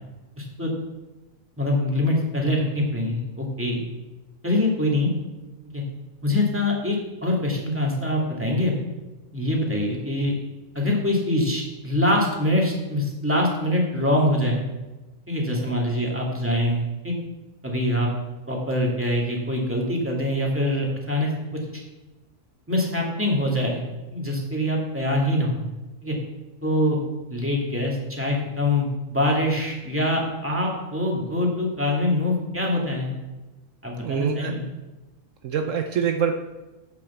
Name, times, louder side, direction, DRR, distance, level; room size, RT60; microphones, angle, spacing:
voice 1, 0.4-0.7 1.6-3.8 4.4-5.1 5.7-5.8 6.2-8.8 9.3-10.3 10.7-14.6 15.3-17.1 17.6-18.1 18.5-21.3 21.7-21.8 22.7-23.8 24.1-25.6 26.0-26.2 26.6-27.0 27.3-33.1 33.8-34.6, left 1 dB, 10° right, -2 dB, 2.2 m, -24 dB
voice 2, 34.0-34.5 35.4-36.3, right 7 dB, 70° right, 5 dB, 1.0 m, -25 dB
8.3 x 6.8 x 7.1 m, 1.1 s
omnidirectional pair, 1.4 m